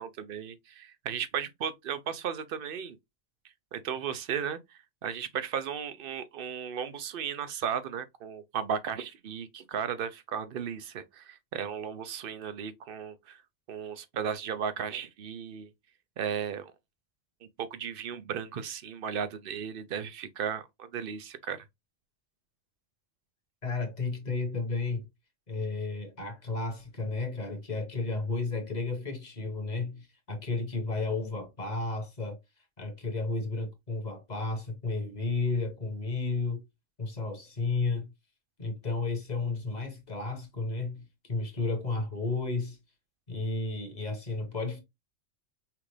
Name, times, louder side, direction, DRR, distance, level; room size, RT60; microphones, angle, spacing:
voice 1, 0.0-3.0 3.7-13.4 13.7-15.7 16.2-16.7 17.4-21.6, right 7 dB, 60° right, 0.7 m, -35 dB
voice 2, 23.6-25.1 25.5-32.4 32.8-36.6 37.0-38.1 38.6-42.8 43.3-44.8, left 3 dB, 40° left, 1.4 m, -32 dB
5.8 x 2.5 x 3.2 m
omnidirectional pair, 1.2 m